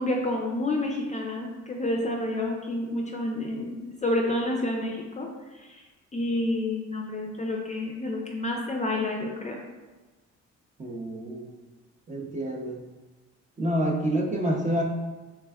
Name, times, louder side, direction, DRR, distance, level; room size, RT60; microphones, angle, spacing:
voice 1, 0.0-5.3 5.5-5.8 6.1-9.6, left 1 dB, 25° left, 0 dB, 0.4 m, -29 dB
voice 2, 10.8-11.5 12.1-12.8 13.6-14.8, right 1 dB, 25° right, -1 dB, 0.6 m, -28 dB
3.4 x 3.1 x 2.3 m, 1.2 s
cardioid pair, 90°, 30 cm